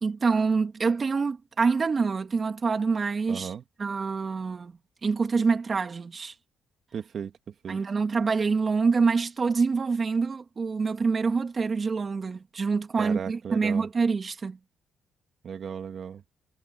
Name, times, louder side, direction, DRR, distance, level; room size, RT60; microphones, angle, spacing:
voice 1, 0.0-3.5 3.8-4.7 5.0-6.3 7.7-14.6, right 4 dB, 35° right, 3.0 m, -26 dB
voice 2, 3.3-3.6 6.9-7.8 13.0-13.9 15.4-16.2, right 7 dB, 55° right, 2.4 m, -36 dB
cardioid pair, 90°, 0 cm